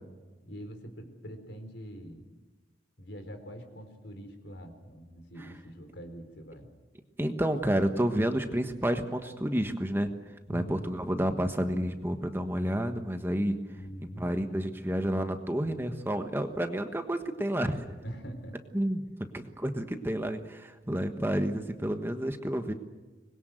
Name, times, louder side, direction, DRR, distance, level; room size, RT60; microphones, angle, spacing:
voice 1, 0.4-2.2 3.0-6.7 10.5-11.0 13.7-14.4 18.0-18.6, equal, 65° left, 7 dB, 4.2 m, -43 dB
voice 2, 7.2-10.1 10.5-13.6 14.2-18.0 18.7-19.0 19.3-22.7, right 1 dB, 10° right, 7 dB, 1.4 m, -30 dB
25.0 x 21.5 x 7.9 m, 1.2 s
head